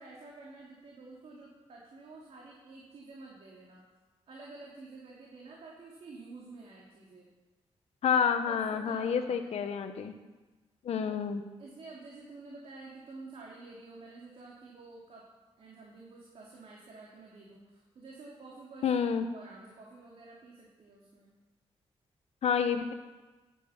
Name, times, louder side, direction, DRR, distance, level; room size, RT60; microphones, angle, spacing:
voice 1, 0.0-3.8 4.3-7.3 8.1-9.8 10.9-11.2 11.6-15.3 15.6-19.0 19.3-21.3, right 3 dB, 65° right, -4 dB, 2.9 m, -50 dB
voice 2, 8.0-10.1 10.8-11.4 18.8-19.2 22.4-22.9, left 7 dB, 75° left, 7 dB, 1.2 m, -29 dB
15.0 x 9.9 x 5.9 m, 1.2 s
wide cardioid pair, 130°, 11 cm